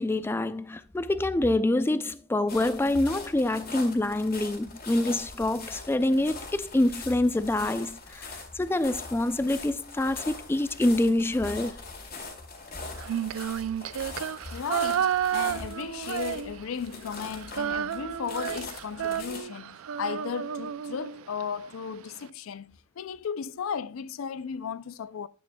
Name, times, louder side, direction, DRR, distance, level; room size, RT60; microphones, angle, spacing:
voice 1, 0.0-11.8, left 1 dB, 10° left, 0.3 m, -26 dB
sound 1, 2.5-19.4, left 4 dB, 45° left, 2.2 m, -42 dB
Female singing, 13.0-16.9 17.1-21.4, right 9 dB, 85° right, 0.4 m, -31 dB
voice 2, 14.5-25.3, left 7 dB, 80° left, 0.4 m, -35 dB
11.0 x 8.6 x 2.2 m
head